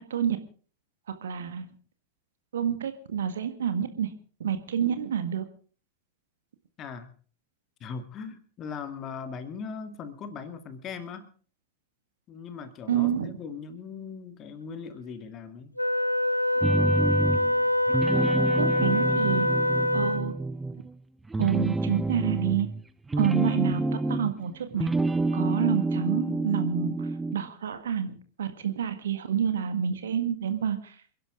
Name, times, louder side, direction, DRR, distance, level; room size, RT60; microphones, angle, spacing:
voice 1, 1.2-1.7 2.5-4.1 4.4-5.4 12.9-13.4 18.5-19.5 19.9-20.3 21.4-22.7 23.2-23.8 24.1-24.9 25.3-30.9, right 8 dB, 65° right, 9 dB, 1.8 m, -28 dB
voice 2, 6.8-7.1 7.8-11.3 12.3-15.7, left 6 dB, 30° left, 10 dB, 1.9 m, -39 dB
Wind instrument woodwind instrument, 15.8-20.4, left 1 dB, 90° left, 0.8 m, -25 dB
sound 1, 16.6-17.6 17.9-20.9 21.3-24.4 24.7-27.4, right 2 dB, 10° right, 0.7 m, -28 dB
27.5 x 11.0 x 3.8 m, 0.41 s
figure-of-eight pair, 90°, 0 cm